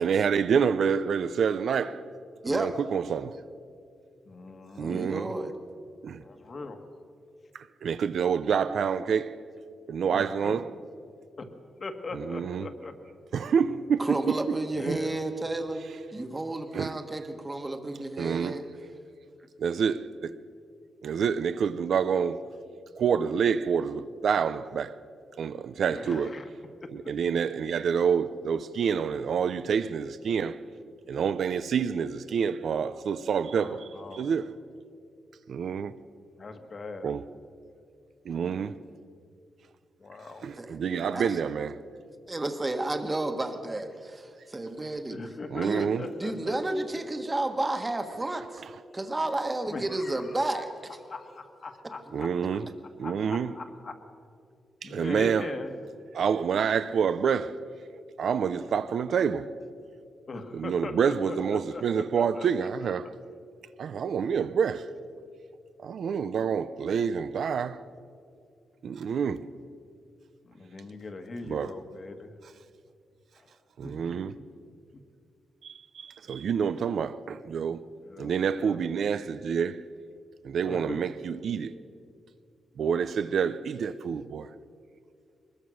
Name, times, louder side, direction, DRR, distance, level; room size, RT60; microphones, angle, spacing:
voice 1, 0.0-2.0 2.4-3.4 4.8-5.3 6.0-6.2 7.5-9.3 9.9-10.7 12.1-12.7 13.3-14.6 14.9-15.0 16.7-17.0 18.2-18.6 19.6-20.4 21.0-22.5 23.0-25.0 25.4-26.4 26.9-30.6 31.1-34.5 35.5-35.9 37.0-37.2 38.2-38.8 40.4-41.8 45.5-46.1 48.6-48.7 52.1-52.7 53.0-53.6 54.8-55.5 56.1-57.6 58.2-59.5 60.5-63.1 63.8-64.9 65.8-67.8 68.8-69.4 71.4-71.8 72.4-72.5 73.8-74.4 75.6-77.8 78.2-79.8 80.4-81.7 82.8-84.5, right 7 dB, 65° right, 0.6 m, -28 dB
voice 2, 4.2-5.1 6.2-6.8 10.1-10.6 11.4-11.5 11.8-12.9 14.8-15.2 25.9-26.4 33.6-34.3 36.4-37.1 40.0-40.4 45.1-46.6 49.7-50.4 51.1-52.3 53.0-54.0 54.8-55.7 60.3-61.4 61.7-62.5 70.4-72.3 73.4-73.5 73.8-73.9 74.3-74.4 78.0-78.8 80.6-81.0, left 3 dB, 35° left, 1.6 m, -40 dB
voice 3, 4.8-5.5 14.0-15.8 16.1-18.7 40.6-40.8 41.1-41.3 42.3-45.2 45.6-45.9 46.2-48.6 48.9-51.0 52.2-52.3, right 2 dB, 20° right, 1.5 m, -31 dB
22.5 x 21.0 x 6.4 m
wide cardioid pair, 150°, 0 cm